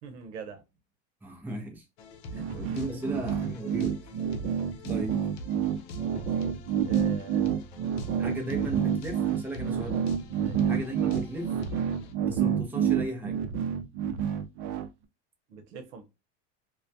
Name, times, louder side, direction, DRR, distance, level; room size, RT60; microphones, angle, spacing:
voice 1, 0.0-0.6 6.9-7.5 10.4-10.7 15.5-16.1, right 6 dB, 85° right, 0.8 m, -42 dB
voice 2, 1.2-1.8 2.3-4.1 4.9-5.3 6.3-6.5 8.2-10.1 10.7-11.6 12.2-13.4, right 1 dB, 5° right, 0.5 m, -36 dB
sound 1, 2.0-12.1, left 1 dB, 75° left, 0.6 m, -44 dB
sound 2, 2.3-14.9, right 8 dB, 55° right, 0.5 m, -28 dB
2.2 x 2.2 x 2.6 m
supercardioid pair, 130°, 34 cm